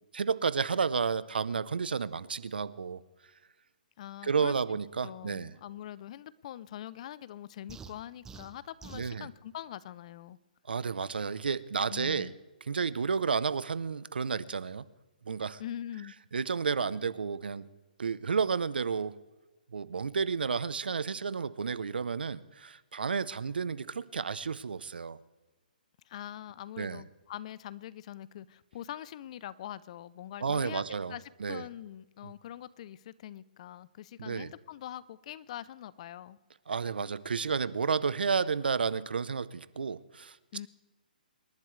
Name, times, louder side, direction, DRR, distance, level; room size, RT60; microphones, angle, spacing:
voice 1, 0.1-3.0 4.2-5.5 8.9-9.3 10.7-12.3 12.7-14.9 15.3-15.6 16.3-17.7 18.0-19.2 19.7-25.2 26.8-27.0 30.4-31.6 32.2-32.3 34.2-34.5 36.7-40.4, right 5 dB, 90° right, 17 dB, 0.7 m, -31 dB
voice 2, 4.0-4.5 5.0-10.4 11.9-12.3 15.6-16.2 26.1-36.4 40.5-40.7, left 12 dB, 45° left, 19 dB, 0.6 m, -43 dB
sound 1, 7.7-9.1, right 5 dB, 10° right, 0.5 m, -48 dB
27.0 x 11.5 x 3.3 m, 1.2 s
hypercardioid pair, 150°, 5 cm